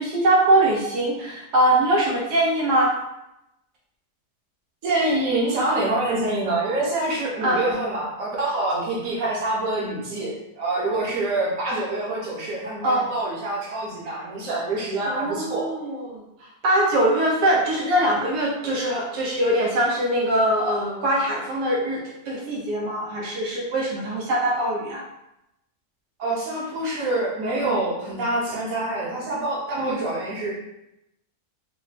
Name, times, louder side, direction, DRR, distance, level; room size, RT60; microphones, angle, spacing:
voice 1, 0.0-2.9 7.4-7.6 12.8-13.1 15.1-25.0 27.6-27.7 29.8-30.0, right 1 dB, 85° right, -3 dB, 1.3 m, -22 dB
voice 2, 4.8-15.7 26.2-30.5, right 2 dB, 60° right, -5 dB, 1.3 m, -26 dB
3.5 x 2.0 x 4.0 m, 0.86 s
omnidirectional pair, 1.7 m